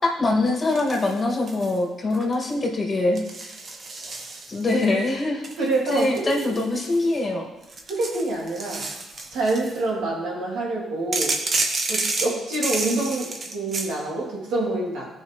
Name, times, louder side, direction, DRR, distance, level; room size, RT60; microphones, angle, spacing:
voice 1, 0.0-3.2 4.5-5.4 5.9-7.5, left 2 dB, 35° left, -1 dB, 2.3 m, -23 dB
sound 1, 0.7-1.8 2.1-2.5 3.2-4.8 5.4-7.2 7.6-9.8 11.1-13.9, right 3 dB, 45° right, 1.2 m, -30 dB
voice 2, 5.6-6.4 7.9-8.9 9.3-11.4 11.9-15.1, right 2 dB, 85° right, -4 dB, 3.1 m, -26 dB
15.5 x 5.5 x 3.3 m, 1.0 s
cardioid pair, 90°, 0 cm